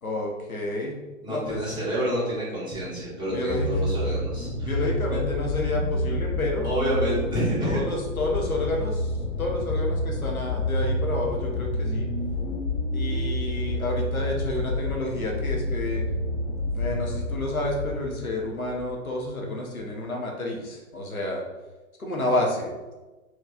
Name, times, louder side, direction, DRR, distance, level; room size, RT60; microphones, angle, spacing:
voice 1, 0.0-1.6 3.2-3.7 4.6-6.7 7.6-12.1 12.9-16.0 16.7-21.4 22.0-22.9, left 1 dB, 90° left, -1 dB, 0.9 m, -30 dB
voice 2, 1.2-4.7 5.1-5.2 6.6-7.8, equal, 10° right, -9 dB, 1.4 m, -28 dB
sound 1, 3.3-18.9 19.7-19.8, left 1 dB, 35° left, 0.9 m, -29 dB
4.5 x 3.1 x 2.4 m, 1.2 s
figure-of-eight pair, 115°, 41 cm